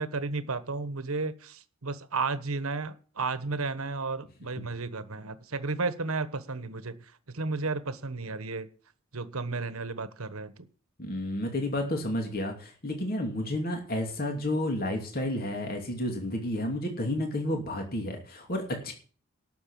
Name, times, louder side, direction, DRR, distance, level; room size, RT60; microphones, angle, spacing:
voice 1, 0.0-8.7 9.1-10.7, right 3 dB, 80° right, 12 dB, 1.3 m, -33 dB
voice 2, 11.0-18.9, left 1 dB, 45° left, 2 dB, 2.8 m, -31 dB
12.5 x 6.9 x 8.6 m, 0.42 s
head